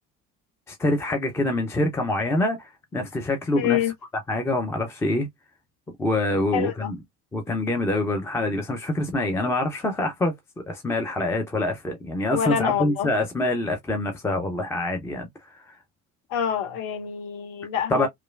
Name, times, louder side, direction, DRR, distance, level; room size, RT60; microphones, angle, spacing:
voice 1, 0.7-3.8 4.3-5.3 6.0-7.0 7.3-10.3 10.7-15.3 15.7-15.8 17.9-18.1, left 1 dB, 5° left, 0.3 m, -25 dB
voice 2, 3.5-3.9 6.5-6.9 12.3-13.1 16.3-18.1, left 9 dB, 55° left, 0.8 m, -26 dB
2.9 x 2.2 x 2.2 m
figure-of-eight pair, 60°, 45 cm